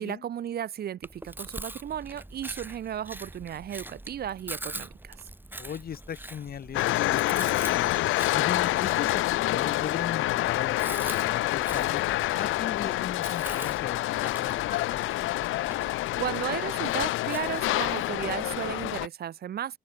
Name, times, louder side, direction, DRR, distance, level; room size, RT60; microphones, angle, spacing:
voice 1, 0.0-5.2 16.2-19.8, right 10 dB, 50° right, 0.7 m, -34 dB
Chewing mastication, 1.0-19.1, right 1 dB, 10° right, 3.5 m, -43 dB
voice 2, 5.6-7.9 8.3-12.0 12.4-15.1, left 8 dB, 50° left, 1.1 m, -37 dB
sound 1, 6.7-19.1, left 17 dB, 90° left, 0.8 m, -27 dB
cardioid pair, 90°, 20 cm